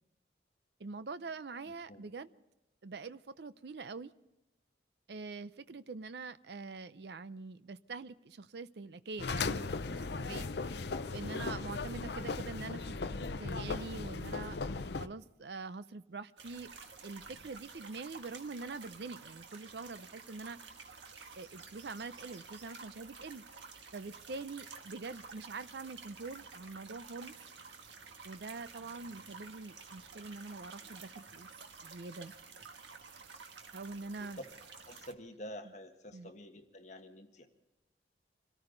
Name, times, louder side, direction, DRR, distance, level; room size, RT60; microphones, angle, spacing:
voice 1, 0.8-2.3 2.8-4.1 5.1-10.5 11.1-14.6 15.0-16.7 17.0-20.6 21.4-23.4 23.9-27.3 28.2-31.5 31.8-32.3 33.7-34.4 36.1-36.3, right 3 dB, 65° right, 0.6 m, -44 dB
voice 2, 1.6-2.0 10.7-10.9 34.2-34.3 34.9-37.5, equal, 40° left, 1.5 m, -49 dB
sound 1, 9.2-15.1, left 3 dB, 65° left, 0.7 m, -37 dB
sound 2, 16.4-35.1, right 5 dB, 90° right, 1.5 m, -51 dB
26.0 x 14.0 x 3.9 m
head